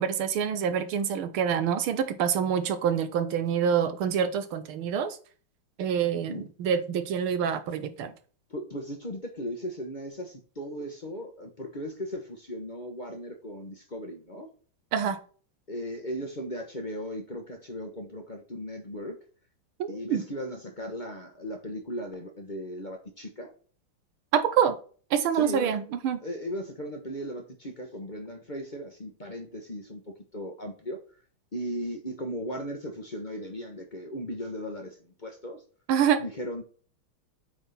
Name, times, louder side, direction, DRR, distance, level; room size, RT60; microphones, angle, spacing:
voice 1, 0.0-5.2 5.8-8.1 14.9-15.2 19.8-20.2 24.3-24.8 25.1-26.2 35.9-36.2, right 8 dB, 85° right, 10 dB, 1.8 m, -26 dB
voice 2, 8.5-14.5 15.7-19.2 19.9-23.5 25.3-25.8 26.2-31.0 31.5-35.6 36.2-36.6, equal, 35° left, 3 dB, 0.8 m, -37 dB
8.6 x 3.7 x 4.1 m, 0.41 s
omnidirectional pair, 2.3 m